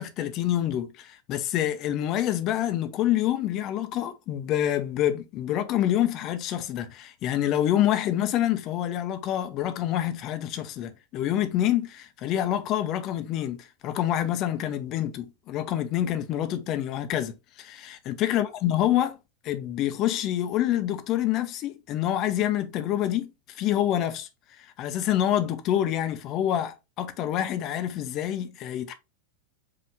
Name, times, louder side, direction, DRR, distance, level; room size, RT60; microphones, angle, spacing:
voice 1, 0.0-19.2 19.4-23.3 23.5-24.3 24.6-28.9, left 12 dB, 35° left, 0.6 m, -27 dB
4.7 x 2.5 x 3.4 m
figure-of-eight pair, 90°, 0 cm